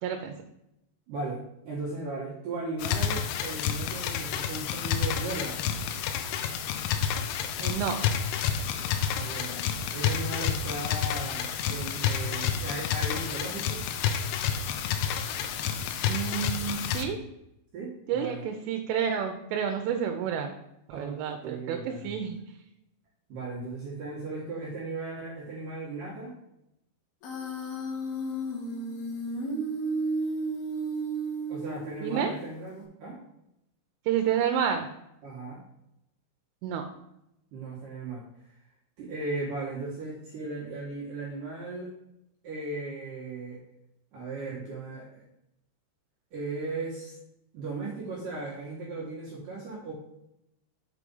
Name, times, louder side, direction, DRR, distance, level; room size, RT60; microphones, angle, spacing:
voice 1, 0.0-0.3 7.6-8.0 16.1-17.2 18.1-20.5 20.9-22.4 32.0-32.3 34.1-34.9 36.6-36.9, right 8 dB, 85° right, 4 dB, 3.1 m, -29 dB
voice 2, 1.1-5.6 9.1-9.6 9.9-13.9 17.7-18.5 20.9-22.3 23.3-26.3 31.5-33.2 35.2-35.6 37.5-38.2 39.0-41.9 42.4-43.6 44.1-45.2 46.3-47.2 47.5-49.9, right 2 dB, 60° right, -5 dB, 2.3 m, -37 dB
sound 1, 2.8-17.1, left 8 dB, 85° left, 3.0 m, -30 dB
Human voice, 27.2-32.2, right 2 dB, 65° left, 2.9 m, -32 dB
7.5 x 4.8 x 5.4 m, 0.84 s
omnidirectional pair, 5.6 m